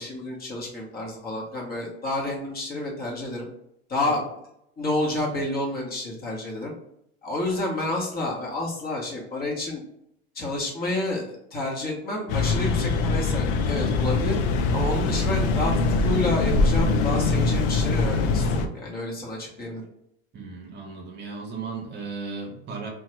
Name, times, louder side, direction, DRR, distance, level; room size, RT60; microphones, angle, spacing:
voice 1, 0.0-3.5 3.9-4.2 4.8-6.7 7.2-9.8 10.3-14.4 14.7-15.7 16.0-19.8, left 2 dB, 30° left, -2 dB, 1.1 m, -29 dB
sound 1, 12.3-18.7, left 3 dB, 60° left, 0.5 m, -23 dB
voice 2, 20.3-22.9, right 4 dB, 35° right, 0 dB, 0.8 m, -36 dB
2.9 x 2.3 x 3.0 m, 0.76 s
supercardioid pair, 115°, 31 cm